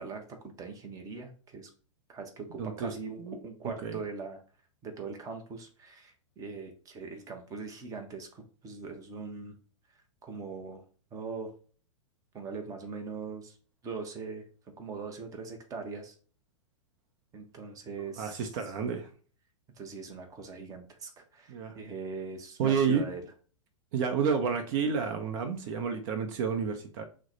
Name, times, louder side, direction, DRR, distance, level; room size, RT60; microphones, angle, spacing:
voice 1, 0.0-1.7 2.1-4.4 4.8-9.6 10.2-10.8 11.1-11.5 12.3-13.6 13.8-14.4 14.8-16.1 17.3-18.5 19.8-23.2, right 4 dB, 20° right, 4 dB, 1.0 m, -41 dB
voice 2, 2.6-2.9 3.2-3.3 3.8-4.0 18.2-19.1 21.5-21.7 22.6-23.0 23.9-27.0, right 6 dB, 45° right, 5 dB, 0.8 m, -30 dB
6.1 x 2.2 x 3.9 m, 0.40 s
figure-of-eight pair, 100°, 16 cm